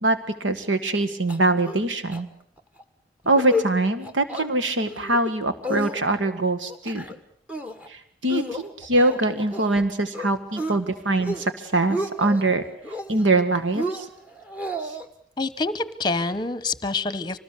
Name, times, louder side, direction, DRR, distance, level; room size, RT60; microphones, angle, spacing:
voice 1, 0.0-2.3 3.3-7.0 7.9-12.6 13.1-14.1 14.8-14.9, right 2 dB, 85° right, 10 dB, 1.8 m, -23 dB
sound 1, 1.3-1.8 2.1-2.2 2.6-2.8 3.2-3.7 4.0-4.5 4.9-5.3 5.6-6.3 6.7-7.2 7.5-7.9 8.3-9.8 10.1-10.8 11.1-11.5 11.8-12.4 12.8-13.4 13.7-15.1, equal, 10° right, 1.6 m, -31 dB
voice 2, 15.4-17.4, left 3 dB, 25° left, 15 dB, 1.1 m, -26 dB
26.0 x 19.5 x 8.4 m, 0.64 s
head